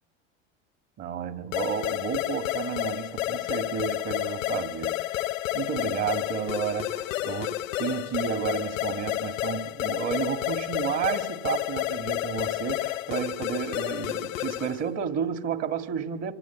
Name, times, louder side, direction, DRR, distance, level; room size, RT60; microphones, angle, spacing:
voice 1, 1.0-16.3, right 8 dB, 40° right, 2.2 m, -32 dB
sound 1, 1.5-14.9, left 16 dB, 85° left, 1.0 m, -30 dB
25.5 x 25.0 x 8.3 m
supercardioid pair, 110°, 38 cm